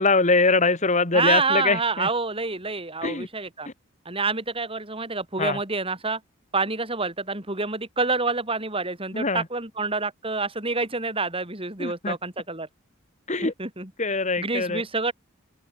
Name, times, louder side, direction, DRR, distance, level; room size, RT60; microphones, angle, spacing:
voice 1, 0.0-2.1 3.0-3.3 5.4-5.6 9.1-9.5 11.8-12.2 13.3-13.5 14.0-14.8, left 3 dB, 35° left, 1.9 m, -23 dB
voice 2, 1.1-3.7 4.0-6.2 6.5-12.7 13.4-13.9 14.4-15.1, right 3 dB, 25° right, 4.7 m, -27 dB
head